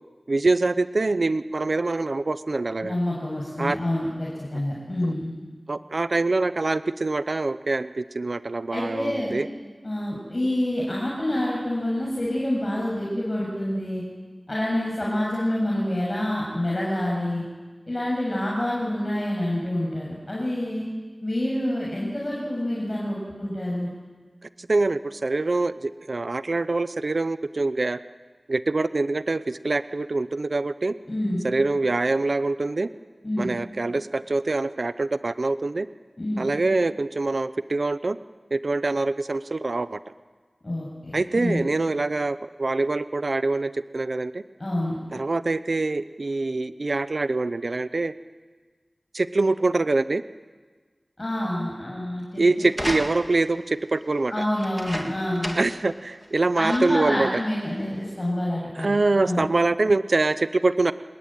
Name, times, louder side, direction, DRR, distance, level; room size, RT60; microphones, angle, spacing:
voice 1, 0.3-2.9 3.6-3.8 5.7-9.5 24.6-28.0 28.5-30.9 31.4-32.9 33.4-35.9 36.4-38.2 38.5-40.0 41.1-44.4 45.1-48.1 49.1-50.2 52.4-54.5 55.6-57.3 58.8-60.9, right 3 dB, 70° right, 13 dB, 0.7 m, -24 dB
voice 2, 2.8-5.3 8.7-9.3 9.8-14.0 14.5-17.4 17.9-20.9 21.2-23.9 31.1-31.4 33.2-33.5 36.2-36.5 40.6-41.6 44.6-45.0 51.2-52.6 54.3-55.6 56.6-59.5, left 1 dB, 40° left, -4 dB, 7.4 m, -27 dB
sound 1, 52.7-53.5 54.6-55.8 56.2-56.3 56.7-57.1 57.9-58.0, equal, ahead, 3.2 m, -33 dB
26.0 x 21.0 x 9.2 m, 1.4 s
wide cardioid pair, 55°, 0 cm